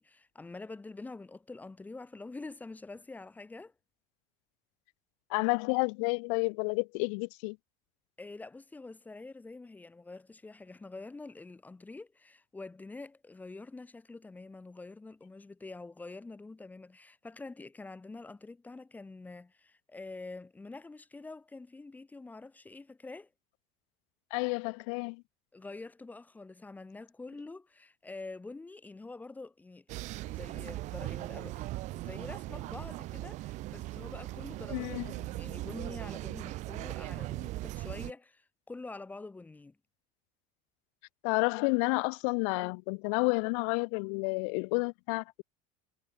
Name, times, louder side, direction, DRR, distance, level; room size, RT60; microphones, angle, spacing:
voice 1, 0.0-3.7 8.2-23.3 25.5-39.8, left 3 dB, 10° left, 1.2 m, -46 dB
voice 2, 5.3-7.6 24.3-25.2 34.7-35.1 41.2-45.4, left 39 dB, 70° left, 0.5 m, -30 dB
sound 1, 29.9-38.1, right 18 dB, 40° right, 0.6 m, -39 dB
cardioid pair, 155°, 18 cm